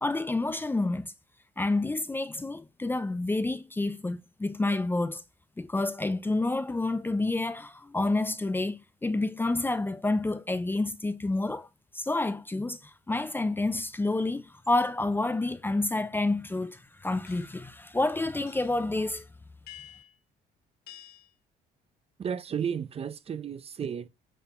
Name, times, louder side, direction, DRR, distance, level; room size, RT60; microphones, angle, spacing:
voice 1, 0.0-1.1 1.6-5.2 5.6-11.7 11.9-19.3, left 2 dB, 10° left, 0.5 m, -29 dB
sound 1, 17.3-17.6 18.5-18.9 19.7-20.1 20.9-21.3, left 10 dB, 70° left, 2.0 m, -49 dB
voice 2, 22.2-24.1, right 7 dB, 35° right, 0.7 m, -33 dB
9.1 x 4.2 x 4.3 m
cardioid pair, 110°, 17 cm